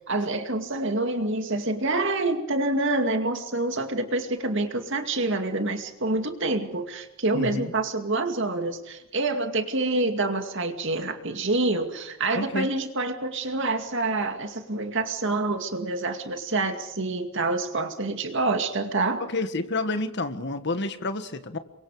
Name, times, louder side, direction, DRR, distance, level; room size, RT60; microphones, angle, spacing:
voice 1, 0.1-19.2, right 2 dB, 60° right, 6 dB, 2.3 m, -27 dB
voice 2, 7.3-7.7 12.4-12.7 19.2-21.6, left 2 dB, 55° left, 9 dB, 1.6 m, -29 dB
29.5 x 24.0 x 5.0 m, 0.83 s
head